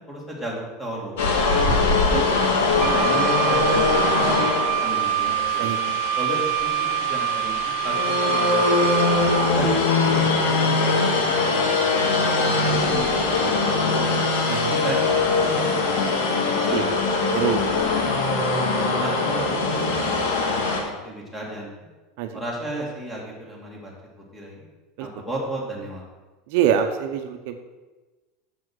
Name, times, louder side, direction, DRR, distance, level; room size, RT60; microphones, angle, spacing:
voice 1, 0.0-2.4 2.9-5.7 6.2-9.0 9.5-14.2 14.7-16.9 17.2-17.6 18.7-21.7 22.3-23.9 24.3-24.6 25.0-26.0, right 1 dB, 5° left, -3 dB, 2.5 m, -34 dB
sound 1, 1.2-20.8, left 3 dB, 85° left, 1.9 m, -22 dB
Wind instrument woodwind instrument, 2.8-9.6, right 16 dB, 45° right, 0.3 m, -25 dB
voice 2, 5.6-6.0 9.6-9.7 14.5-14.8 16.7-16.9 17.3-18.1 22.2-22.4 25.0-25.1 26.5-27.6, right 9 dB, 65° right, 6 dB, 0.8 m, -25 dB
7.3 x 7.3 x 6.3 m, 1.2 s
supercardioid pair, 155°, 0 cm